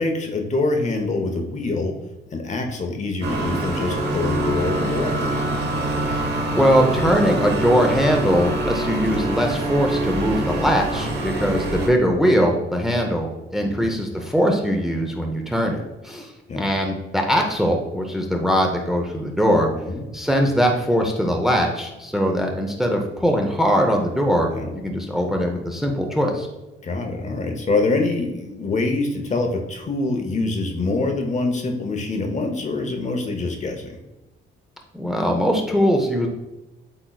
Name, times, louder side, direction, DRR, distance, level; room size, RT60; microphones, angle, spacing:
voice 1, 0.0-1.9 2.3-5.4 13.6-13.9 16.5-16.7 19.7-20.1 24.5-24.7 26.8-34.0, left 3 dB, 35° left, 3 dB, 0.8 m, -25 dB
sound 1, 3.2-11.9, right 1 dB, 55° right, 1.0 m, -25 dB
voice 2, 6.5-19.7 20.1-26.5 34.9-36.3, equal, ahead, 2 dB, 0.7 m, -21 dB
7.8 x 3.0 x 2.3 m, 1.0 s
cardioid pair, 90°, 20 cm